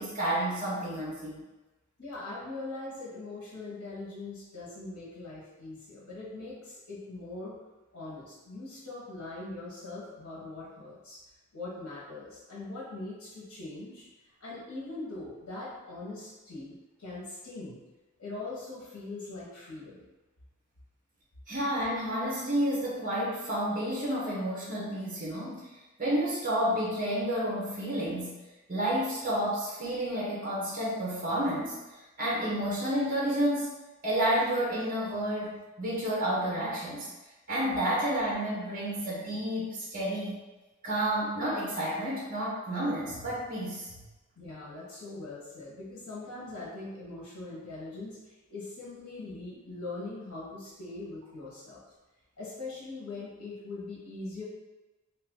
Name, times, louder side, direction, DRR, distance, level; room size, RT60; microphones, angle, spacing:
voice 1, 0.0-1.4 21.5-25.7 26.0-28.3 28.7-31.8 32.2-33.7 34.0-37.1 37.5-40.4 40.8-44.0, right 1 dB, 40° right, -6 dB, 0.8 m, -30 dB
voice 2, 2.0-7.6 7.9-11.2 11.5-14.1 14.4-17.8 18.2-20.0 44.4-51.8 52.4-54.4, left 2 dB, 85° left, -7 dB, 1.0 m, -41 dB
2.7 x 2.5 x 3.6 m, 1.1 s
head